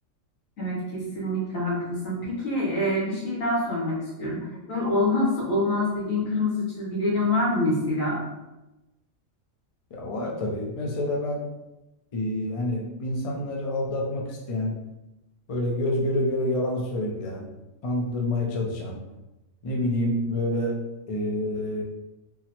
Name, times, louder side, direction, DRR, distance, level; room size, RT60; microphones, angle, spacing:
voice 1, 0.6-8.2, left 1 dB, 80° left, -6 dB, 1.6 m, -26 dB
voice 2, 9.9-11.4 12.1-14.7 15.5-17.5 17.8-19.0 19.6-20.8 21.1-21.8, left 1 dB, 65° left, -1 dB, 0.3 m, -27 dB
3.9 x 2.0 x 2.9 m, 0.99 s
omnidirectional pair, 1.4 m